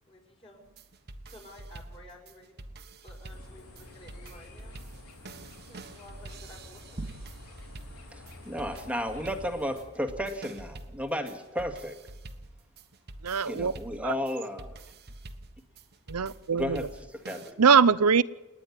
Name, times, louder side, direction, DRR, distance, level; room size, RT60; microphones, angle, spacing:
voice 1, 0.1-0.6 1.3-2.7 3.0-4.7 5.6-7.1, left 1 dB, 25° left, 1 dB, 5.8 m, -52 dB
sound 1, 0.7-17.5, right 2 dB, 45° right, 1.4 m, -47 dB
sound 2, 3.3-9.8, left 2 dB, 85° left, 4.2 m, -49 dB
sound 3, 7.0-7.9, right 2 dB, 30° right, 0.6 m, -41 dB
voice 2, 8.1-12.0 13.5-14.8 16.5-17.5, equal, 5° right, 5 dB, 2.1 m, -33 dB
voice 3, 13.2-13.7 14.0-14.1 16.1-16.8 17.6-18.2, right 6 dB, 80° right, 18 dB, 0.7 m, -22 dB
28.5 x 10.0 x 10.0 m, 1.1 s
head